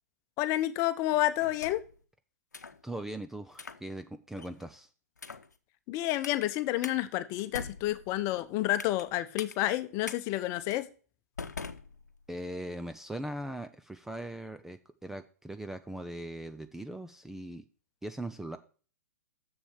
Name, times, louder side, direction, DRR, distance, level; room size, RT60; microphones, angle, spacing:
voice 1, 0.4-1.8 5.9-10.9, left 15 dB, 35° left, 13 dB, 0.8 m, -29 dB
sound 1, 1.4-2.0 2.5-2.8 3.5-3.8 4.4-4.7 5.2-5.5 6.2-6.4 6.8-7.0 7.4-9.1 9.4-9.5 10.0-10.2 10.7-10.8 11.4-12.4, left 4 dB, 80° left, 0.9 m, -43 dB
voice 2, 2.8-4.9 12.3-17.6 18.0-18.6, right 1 dB, 5° right, 9 dB, 0.5 m, -40 dB
7.1 x 7.0 x 6.3 m, 0.39 s
figure-of-eight pair, 115°, 9 cm